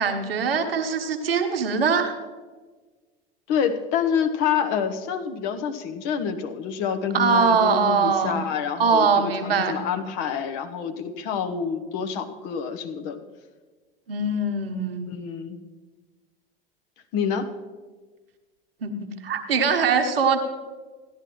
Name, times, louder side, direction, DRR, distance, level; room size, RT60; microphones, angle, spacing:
voice 1, 0.0-2.2 7.1-8.4 8.8-9.8 14.1-15.2 18.8-20.4, right 5 dB, 75° right, 6 dB, 1.1 m, -22 dB
voice 2, 3.5-13.2 15.1-15.6 17.1-17.5, left 7 dB, 50° left, 5 dB, 1.1 m, -27 dB
16.0 x 11.0 x 3.1 m, 1.4 s
figure-of-eight pair, 75°, 29 cm